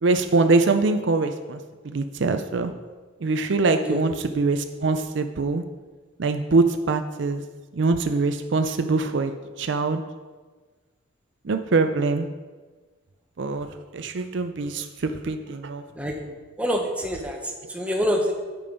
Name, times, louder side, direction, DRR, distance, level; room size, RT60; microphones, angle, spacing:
voice 1, 0.0-1.6 1.8-2.7 3.2-5.6 6.2-7.4 7.8-10.0 11.5-12.3 13.4-13.7 13.9-15.8, right 3 dB, 60° right, 8 dB, 0.5 m, -23 dB
voice 2, 16.6-18.3, equal, 5° right, 1 dB, 1.0 m, -26 dB
8.6 x 6.7 x 5.2 m, 1.4 s
head